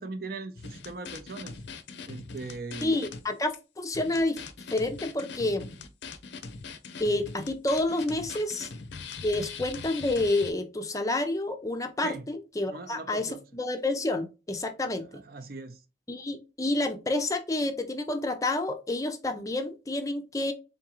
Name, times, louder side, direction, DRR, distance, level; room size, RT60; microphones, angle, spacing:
voice 1, 0.0-1.6 2.1-2.9 12.0-12.3 12.7-13.4 15.1-15.8, right 3 dB, 55° right, 0.5 m, -39 dB
sound 1, 0.6-3.2 3.5-3.6 3.9-10.5, left 4 dB, 75° left, 0.6 m, -41 dB
voice 2, 2.8-4.4 4.7-5.7 7.0-8.7 9.2-15.2 16.1-20.5, left 2 dB, 20° left, 0.4 m, -29 dB
3.8 x 3.6 x 2.9 m
head